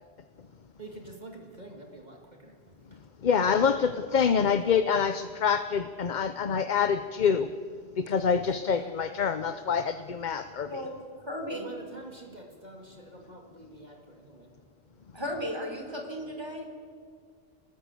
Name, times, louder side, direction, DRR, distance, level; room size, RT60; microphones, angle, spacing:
voice 1, 0.8-2.5 11.5-13.9 14.2-14.5, right 2 dB, 45° right, 2 dB, 2.4 m, -46 dB
voice 2, 3.2-7.5 8.0-10.9, left 6 dB, 50° left, 10 dB, 0.8 m, -26 dB
voice 3, 10.7-11.7 15.1-16.7, equal, 25° right, 2 dB, 3.7 m, -35 dB
24.5 x 19.0 x 8.3 m, 2.1 s
omnidirectional pair, 1.1 m